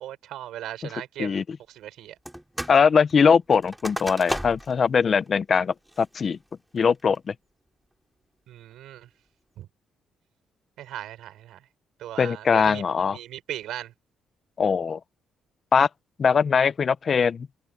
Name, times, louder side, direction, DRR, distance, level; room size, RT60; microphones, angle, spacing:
voice 1, 0.0-2.2 8.5-9.1 9.6-9.7 10.8-11.6 12.0-12.8 13.1-13.9, right 12 dB, 80° right, 6.3 m, -38 dB
sound 1, 2.3-2.8 3.1-4.8 5.3-5.4 5.9-6.3 6.8-7.2, equal, 5° right, 4.2 m, -34 dB
voice 2, 2.7-6.4 6.7-7.3 12.2-13.2 14.6-15.0 15.7-15.9 16.2-17.5, left 6 dB, 45° left, 0.9 m, -21 dB
cardioid pair, 90°, 0 cm